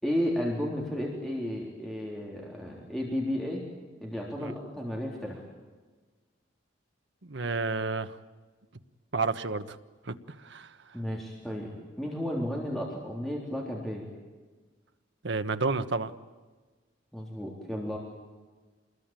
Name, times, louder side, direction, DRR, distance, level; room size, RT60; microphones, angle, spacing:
voice 1, 0.0-3.6 4.0-5.4 10.9-14.1 17.1-18.0, equal, ahead, -2 dB, 3.6 m, -33 dB
voice 2, 7.2-8.2 9.1-9.8 10.0-10.8 15.2-16.1, right 3 dB, 65° right, 9 dB, 1.2 m, -31 dB
27.0 x 21.0 x 9.1 m, 1.3 s
head